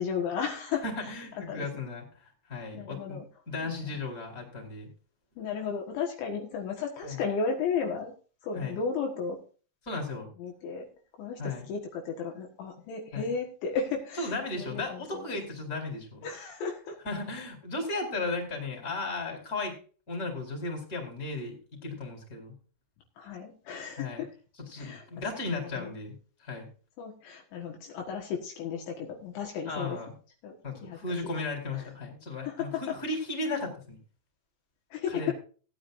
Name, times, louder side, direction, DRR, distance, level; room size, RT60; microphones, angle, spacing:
voice 1, 0.0-1.2 1.5-1.7 2.7-3.3 3.6-4.0 5.4-8.1 8.4-9.4 10.4-10.9 11.2-15.3 16.2-17.0 23.2-24.3 24.8-25.1 25.5-25.9 27.0-30.0 30.4-31.2 31.7-31.9 32.4-33.0 34.9-35.3, left 6 dB, 70° left, 1 dB, 3.7 m, -34 dB
voice 2, 0.8-2.0 2.5-3.2 3.5-4.9 7.0-7.2 8.5-8.8 9.8-10.3 11.4-11.7 13.1-13.3 14.2-16.3 17.0-19.8 20.1-21.6 21.8-22.5 24.0-24.2 24.7-26.1 26.4-26.7 29.7-30.1 30.6-34.0 35.1-35.3, left 3 dB, 20° left, 1 dB, 4.2 m, -35 dB
18.0 x 10.0 x 2.6 m, 0.38 s
omnidirectional pair, 5.8 m